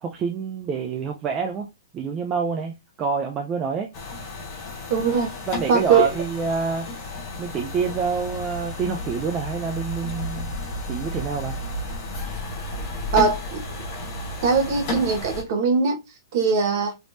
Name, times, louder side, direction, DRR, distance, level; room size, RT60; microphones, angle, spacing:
voice 1, 0.0-1.7 1.9-3.9 5.5-10.5 10.9-11.6, right 6 dB, 15° right, 0.3 m, -27 dB
sound 1, 3.9-15.4, left 1 dB, 25° left, 1.0 m, -32 dB
voice 2, 4.9-5.3 5.7-6.1 13.1-13.6 14.4-16.0 16.3-16.9, right 5 dB, 35° right, 1.0 m, -21 dB
3.4 x 3.0 x 2.6 m
hypercardioid pair, 175°, 2 cm